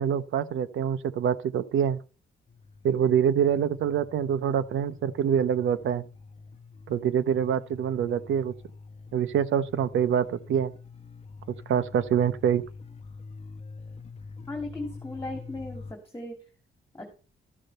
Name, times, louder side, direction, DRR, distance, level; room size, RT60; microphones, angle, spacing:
voice 1, 0.0-2.0 2.8-6.0 6.9-8.5 9.1-10.7 11.5-12.6, right 8 dB, 85° right, 0.8 m, -25 dB
sound 1, 2.5-15.9, left 4 dB, 35° left, 0.9 m, -46 dB
voice 2, 14.5-16.4 17.0-17.1, left 2 dB, 15° left, 2.7 m, -37 dB
13.5 x 6.6 x 4.2 m
cardioid pair, 95°, 20 cm